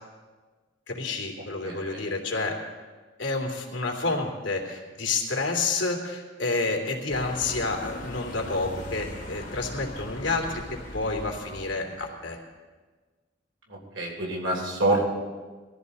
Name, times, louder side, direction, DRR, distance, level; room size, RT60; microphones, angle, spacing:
voice 1, 0.9-2.5 3.2-10.6 10.9-12.4, left 3 dB, 75° left, 0 dB, 2.8 m, -29 dB
voice 2, 1.6-2.1 13.7-15.1, right 2 dB, 90° right, -1 dB, 3.5 m, -27 dB
sound 1, 7.1-12.1, left 1 dB, 45° left, 2.6 m, -40 dB
20.5 x 14.0 x 4.2 m, 1.4 s
head